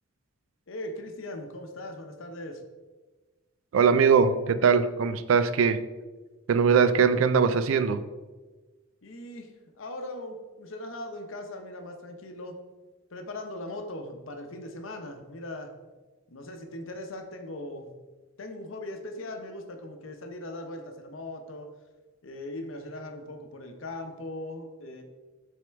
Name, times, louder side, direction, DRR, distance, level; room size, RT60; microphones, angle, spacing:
voice 1, 0.7-2.6 9.0-12.6 13.1-15.7 16.3-17.9 18.4-21.7 22.2-25.0, left 1 dB, 75° left, 5 dB, 0.7 m, -39 dB
voice 2, 3.7-5.8 6.5-8.0, right 6 dB, 80° right, 13 dB, 0.4 m, -21 dB
7.6 x 3.6 x 3.4 m, 1.3 s
head